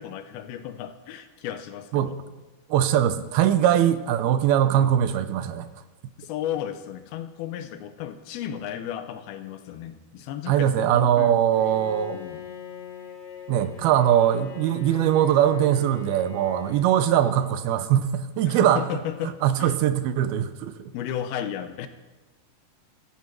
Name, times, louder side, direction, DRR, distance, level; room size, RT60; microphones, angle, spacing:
voice 1, 0.0-2.2 4.7-5.0 6.2-11.4 12.1-12.4 18.4-19.8 20.9-21.9, left 10 dB, 85° left, 9 dB, 2.7 m, -34 dB
voice 2, 2.7-5.7 10.5-12.2 13.5-18.8 19.4-20.9, right 10 dB, 85° right, 11 dB, 2.6 m, -21 dB
Bowed string instrument, 11.5-17.8, left 9 dB, 55° left, 2.5 m, -43 dB
15.5 x 15.0 x 4.6 m, 1.2 s
omnidirectional pair, 4.4 m